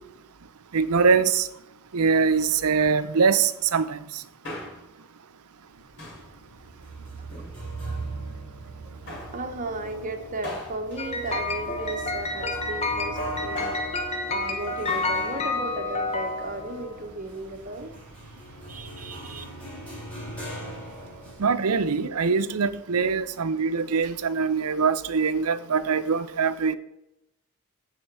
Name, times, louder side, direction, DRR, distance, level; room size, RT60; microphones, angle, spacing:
voice 1, 0.7-1.5 1.9-4.0 21.4-26.8, right 5 dB, 85° right, 13 dB, 0.6 m, -23 dB
Male speech man speaking, 4.2-5.0 6.0-6.4 7.2-8.0 9.1-9.4 10.4-12.1 13.3-14.0 14.9-15.2 15.5-15.6, left 1 dB, 50° left, 3.2 m, -41 dB
sound 1, 5.7-21.5, right 1 dB, 5° left, 4.6 m, -40 dB
voice 2, 9.0-13.7 14.3-17.9 18.7-19.4, right 2 dB, 35° right, 5 dB, 1.2 m, -35 dB
sound 2, 11.0-17.0, left 2 dB, 30° left, 1.0 m, -30 dB
15.0 x 5.1 x 4.7 m, 0.88 s
head